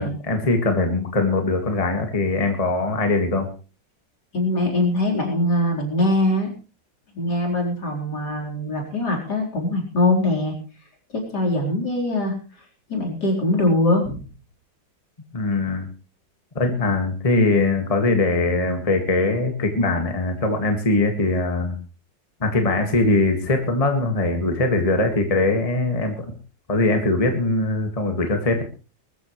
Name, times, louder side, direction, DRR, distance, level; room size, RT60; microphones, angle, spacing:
voice 1, 0.0-3.5 15.3-15.9 16.6-21.8 22.4-26.3 26.7-28.6, left 2 dB, 20° left, 4 dB, 1.9 m, -21 dB
voice 2, 4.3-6.5 7.1-10.5 11.1-12.3 12.9-14.1, left 1 dB, 60° left, 0 dB, 4.7 m, -22 dB
20.5 x 14.0 x 3.2 m, 0.34 s
omnidirectional pair, 2.0 m